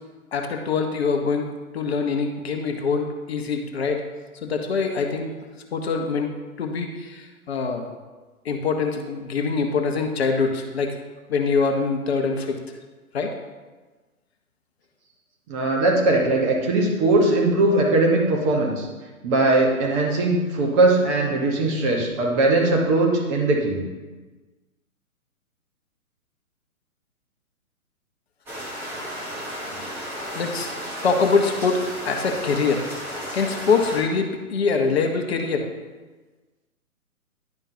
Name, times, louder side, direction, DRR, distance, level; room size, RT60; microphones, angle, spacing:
voice 1, 0.3-4.0 4.4-5.3 5.7-7.9 8.4-11.0 11.3-12.6 13.1-13.3 30.3-30.7 31.0-32.9 33.3-35.7, left 4 dB, 45° left, 4 dB, 0.8 m, -24 dB
voice 2, 15.5-18.9 19.2-23.8 29.7-29.8, right 2 dB, 20° right, 0 dB, 1.1 m, -20 dB
sound 1, 28.5-34.0, equal, 5° right, 0.7 m, -33 dB
10.5 x 5.4 x 2.7 m, 1.3 s
figure-of-eight pair, 125°, 43 cm